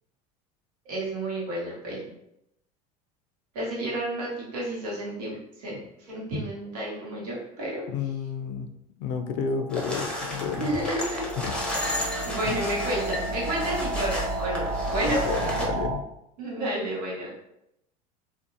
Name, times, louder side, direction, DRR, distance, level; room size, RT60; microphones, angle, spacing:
voice 1, 0.9-2.0 3.5-5.8 6.1-7.8 10.6-11.3 12.2-15.2 16.4-17.4, right 1 dB, 85° right, -4 dB, 1.0 m, -31 dB
voice 2, 7.9-8.7 9.0-10.7 11.4-11.6 12.4-12.6 15.0-16.0, left 6 dB, 65° left, 6 dB, 0.4 m, -31 dB
sound 1, 9.3-16.0, right 1 dB, 25° right, 1.0 m, -32 dB
sound 2, 9.7-15.7, left 1 dB, 5° left, 0.6 m, -33 dB
2.6 x 2.0 x 2.6 m, 0.81 s
supercardioid pair, 90°, 20 cm